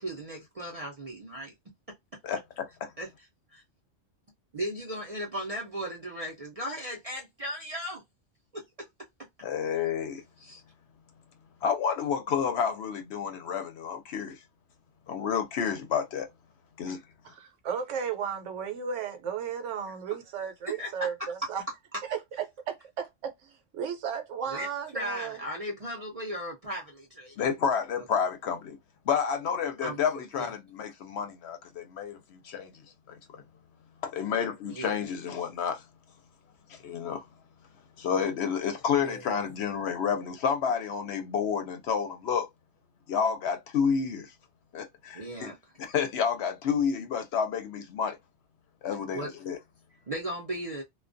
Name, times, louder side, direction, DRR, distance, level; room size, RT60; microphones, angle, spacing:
voice 1, 0.0-1.5 3.0-3.1 4.5-8.0 8.5-8.6 10.4-10.6 20.7-21.1 24.5-24.7 24.9-27.3 29.8-30.0 30.4-30.5 34.7-35.0 39.0-39.3 45.1-45.6 49.1-49.3 50.1-50.8, equal, 45° right, 0.4 m, -36 dB
voice 2, 2.2-2.9 9.4-10.2 11.6-14.4 15.1-16.3 16.8-17.0 27.4-28.8 29.1-32.7 33.1-33.2 34.0-35.8 36.7-37.2 38.0-42.5 43.1-44.3 44.7-45.5 45.8-48.2 48.8-49.6, left 7 dB, 65° left, 0.8 m, -30 dB
voice 3, 17.2-21.6 22.1-22.2 22.7-25.4, right 7 dB, 75° right, 1.0 m, -34 dB
2.3 x 2.2 x 2.5 m
omnidirectional pair, 1.3 m